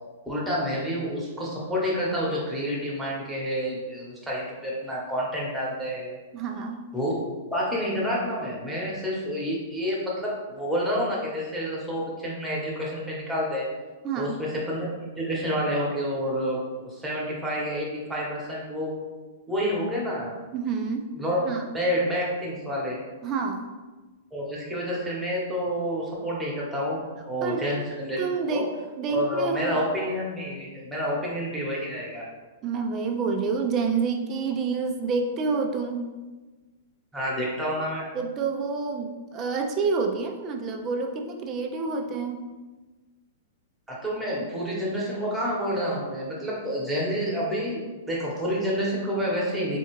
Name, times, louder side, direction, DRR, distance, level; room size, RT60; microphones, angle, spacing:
voice 1, 0.3-6.2 6.9-7.2 7.5-13.7 14.2-18.9 19.5-20.3 21.2-21.4 21.7-23.0 24.3-28.2 28.5-28.6 29.1-32.2 37.1-38.0 43.9-47.8 48.1-49.8, equal, 5° right, -5 dB, 1.0 m, -29 dB
voice 2, 6.3-6.8 14.0-14.4 20.5-21.1 21.5-21.6 23.2-23.7 27.4-27.6 28.2-28.7 29.0-29.8 32.6-36.1 38.1-42.4, right 4 dB, 30° right, 4 dB, 0.4 m, -28 dB
4.2 x 2.4 x 3.0 m, 1.3 s
hypercardioid pair, 140°, 0 cm